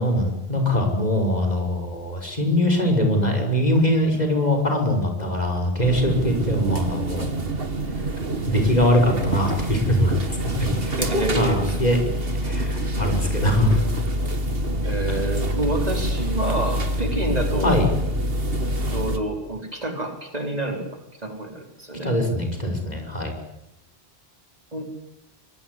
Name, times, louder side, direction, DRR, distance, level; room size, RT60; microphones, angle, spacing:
voice 1, 0.0-7.3 7.9-8.0 8.5-11.0 11.3-12.0 12.4-13.8 15.1-15.2 17.6-17.9 22.0-23.4, left 1 dB, 40° left, 4 dB, 6.2 m, -22 dB
sound 1, 5.8-19.2, right 1 dB, 65° right, 2.6 m, -26 dB
voice 2, 11.0-11.8 14.8-17.8 18.9-22.1 24.7-24.9, right 1 dB, 40° right, 4 dB, 4.6 m, -28 dB
25.5 x 23.0 x 9.9 m, 0.82 s
omnidirectional pair, 1.1 m